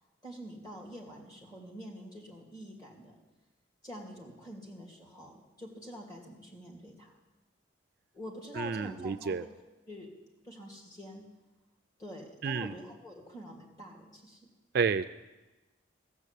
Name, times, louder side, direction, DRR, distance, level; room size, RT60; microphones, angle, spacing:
voice 1, 0.2-3.2 3.8-7.1 8.1-9.5 9.9-10.1 10.4-11.3 12.0-14.4, equal, 20° left, -2 dB, 2.4 m, -46 dB
voice 2, 8.6-9.4 12.4-12.7 14.7-15.0, right 5 dB, 50° right, 11 dB, 0.3 m, -30 dB
15.0 x 7.1 x 8.2 m, 1.1 s
head